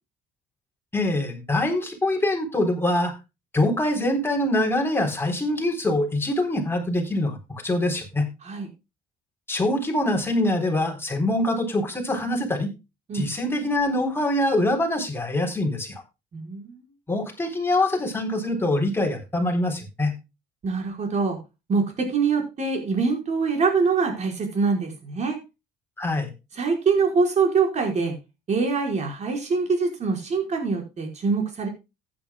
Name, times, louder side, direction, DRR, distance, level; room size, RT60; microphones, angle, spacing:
voice 1, 0.9-3.1 3.5-8.3 9.5-12.7 13.1-16.0 17.1-20.1 26.0-26.3, left 1 dB, 15° left, 2 dB, 3.8 m, -24 dB
voice 2, 16.3-16.8 20.6-21.4 21.7-25.4 26.5-28.1 28.5-31.7, right 4 dB, 45° right, 3 dB, 4.9 m, -24 dB
15.0 x 9.8 x 2.3 m, 0.26 s
cardioid pair, 110°, 17 cm